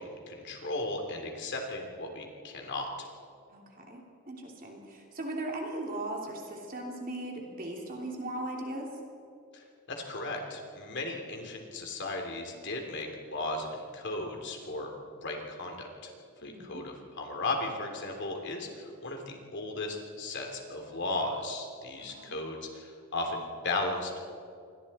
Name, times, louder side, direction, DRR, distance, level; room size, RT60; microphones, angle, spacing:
voice 1, 0.0-3.1 9.5-14.9 15.2-16.1 16.4-24.2, left 2 dB, 55° left, 3 dB, 3.2 m, -36 dB
voice 2, 3.5-8.9 16.4-16.8 22.0-22.4, right 1 dB, 40° right, 0 dB, 3.0 m, -38 dB
28.5 x 23.5 x 4.4 m, 2.4 s
head